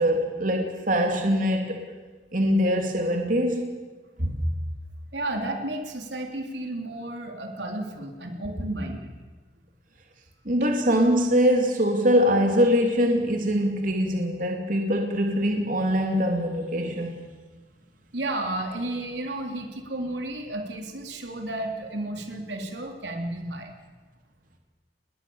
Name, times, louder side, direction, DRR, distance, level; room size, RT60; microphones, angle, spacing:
voice 1, 0.0-1.9 2.3-3.7 4.2-4.4 10.4-17.2, equal, 50° right, 3.0 m, -23 dB
voice 2, 5.1-9.1 18.1-23.7, right 1 dB, 80° right, 3.5 m, -32 dB
29.0 x 20.5 x 7.2 m
head